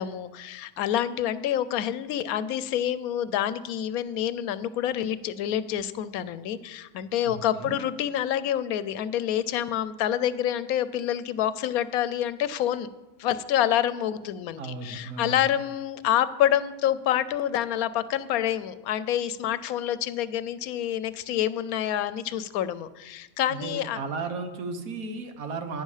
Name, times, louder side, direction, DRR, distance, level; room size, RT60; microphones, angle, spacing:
voice 1, 0.0-12.9 13.2-24.0, left 11 dB, 85° left, 15 dB, 1.1 m, -27 dB
voice 2, 7.3-7.8 14.6-15.4 23.5-25.8, right 4 dB, 75° right, 8 dB, 1.5 m, -35 dB
11.0 x 9.7 x 4.9 m, 1.1 s
omnidirectional pair, 1.5 m